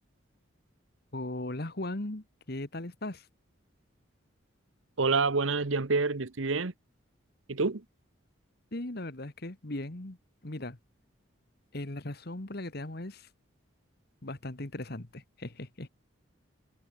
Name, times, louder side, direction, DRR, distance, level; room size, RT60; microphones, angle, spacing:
voice 1, 1.1-3.3 8.7-10.2 10.4-10.8 11.7-13.3 14.2-15.9, left 1 dB, 50° left, 1.6 m, -38 dB
voice 2, 5.0-6.7 7.5-7.8, right 4 dB, 75° right, 1.1 m, -27 dB
head